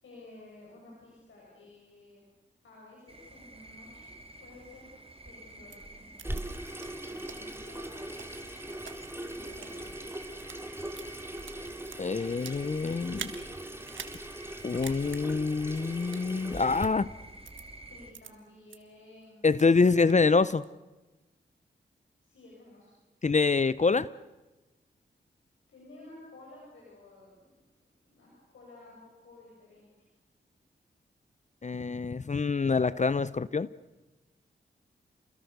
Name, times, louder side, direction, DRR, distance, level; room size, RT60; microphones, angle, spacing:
voice 1, 0.0-2.2 2.6-4.9 5.2-6.3 7.0-8.6 9.3-10.1 17.9-19.6 22.2-23.0 25.7-27.6 28.0-29.9, left 2 dB, 90° left, -4 dB, 6.8 m, -53 dB
sound 1, 3.1-18.1, right 1 dB, 30° right, 3.4 m, -50 dB
sound 2, 5.7-5.8 6.2-6.4 6.8-6.9 7.3-7.4 7.9-9.0 9.5-9.7 10.3-10.6 10.9-12.6 13.1-13.4 13.9-14.2 14.5-14.6 14.8-15.2 16.0-16.3 16.8-16.9 17.5-17.6 18.1-18.3 18.7-18.8 19.2-19.7 20.1-20.7, right 7 dB, 85° right, 1.7 m, -44 dB
Water tap faucet / Sink (filling or washing), 6.2-16.9, right 1 dB, 10° right, 3.0 m, -40 dB
voice 2, 12.0-13.3 14.6-17.1 19.4-20.6 23.2-24.1 31.6-33.7, left 4 dB, 40° left, 17 dB, 0.7 m, -26 dB
29.0 x 21.5 x 6.6 m, 1.1 s
cardioid pair, 45°, 19 cm